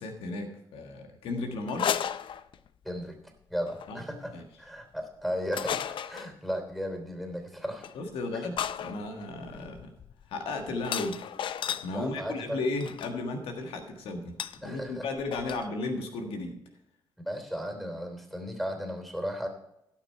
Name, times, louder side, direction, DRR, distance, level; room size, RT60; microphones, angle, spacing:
voice 1, 0.0-1.9 3.9-4.0 4.3-4.4 7.9-9.9 10.3-11.3 11.8-14.3 14.6-16.6, left 3 dB, 80° left, 4 dB, 1.5 m, -34 dB
sound 1, 1.7-2.9 3.7-3.9 5.5-6.3 7.8-8.0 8.6-11.9 12.8-13.1 14.4-14.6 14.9-15.0 15.2-15.7, left 9 dB, 65° left, 0.5 m, -34 dB
voice 2, 2.8-3.2 3.5-4.3 4.6-7.9 8.3-8.4 11.9-12.7 14.6-15.0 17.2-19.5, equal, ahead, 4 dB, 3.2 m, -35 dB
17.0 x 6.1 x 4.5 m, 0.82 s
cardioid pair, 70°, 9 cm